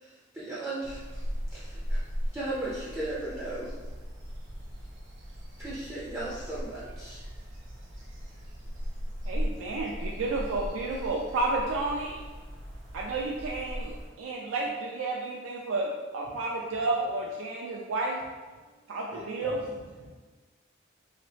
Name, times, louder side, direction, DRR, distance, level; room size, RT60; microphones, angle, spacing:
voice 1, 0.0-1.2 1.5-2.0 2.3-3.7 5.6-7.2, right 2 dB, 10° right, -8 dB, 0.4 m, -36 dB
sound 1, 0.8-14.1, equal, 70° right, 0.8 m, -38 dB
voice 2, 9.3-12.2 12.9-18.2 18.9-19.6, right 2 dB, 90° right, -2 dB, 0.4 m, -31 dB
voice 3, 18.6-20.1, left 1 dB, 80° left, -11 dB, 1.1 m, -46 dB
2.9 x 2.8 x 3.2 m, 1.4 s
head